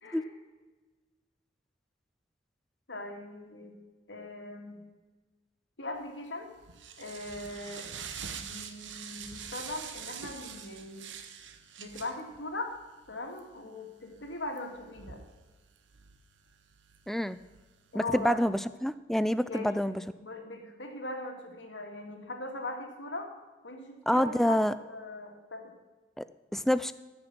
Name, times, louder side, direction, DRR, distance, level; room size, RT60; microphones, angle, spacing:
voice 1, 2.9-3.8 4.1-4.8 5.8-6.5 7.0-7.8 8.4-11.1 11.8-12.7 13.1-15.2 17.9-18.4 19.5-19.8 20.2-23.3 23.6-25.7, left 2 dB, 70° left, 3 dB, 2.1 m, -40 dB
sound 1, 6.1-18.5, right 7 dB, 75° right, 1.0 m, -46 dB
voice 2, 17.1-17.4 17.9-20.0 24.1-24.7 26.2-26.3 26.5-26.9, equal, ahead, 14 dB, 0.3 m, -27 dB
14.0 x 6.3 x 6.0 m, 1.3 s
head